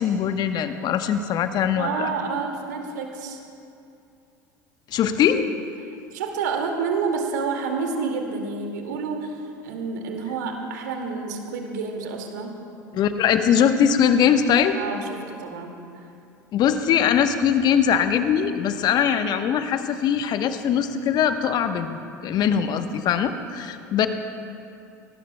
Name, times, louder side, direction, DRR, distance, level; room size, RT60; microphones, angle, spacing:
voice 1, 0.0-2.1 4.9-5.5 12.9-14.8 16.5-24.1, left 8 dB, 45° left, 8 dB, 1.0 m, -21 dB
voice 2, 1.8-3.4 6.1-12.6 14.7-15.8, right 5 dB, 70° right, 2 dB, 2.1 m, -29 dB
24.0 x 19.5 x 2.2 m, 2.6 s
figure-of-eight pair, 75°, 10 cm